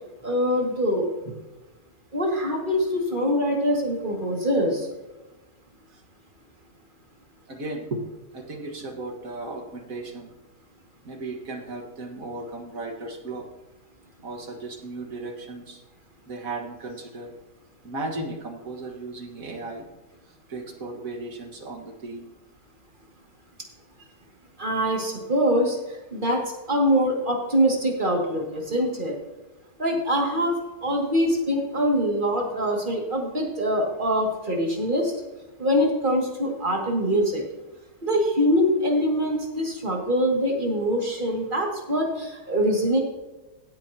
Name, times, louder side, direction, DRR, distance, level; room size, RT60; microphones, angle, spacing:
voice 1, 0.2-1.1 2.1-4.9 24.6-25.8 26.1-26.4 26.7-29.1 29.8-30.5 30.8-35.1 35.6-37.4 38.0-43.0, equal, 30° right, 0 dB, 2.5 m, -23 dB
voice 2, 7.5-8.0 8.3-10.3 11.0-13.5 14.2-15.8 16.3-17.3 17.8-19.9 20.5-22.3 24.0-24.1, right 2 dB, 60° right, 2 dB, 2.2 m, -35 dB
16.0 x 9.0 x 2.9 m, 1.1 s
omnidirectional pair, 1.7 m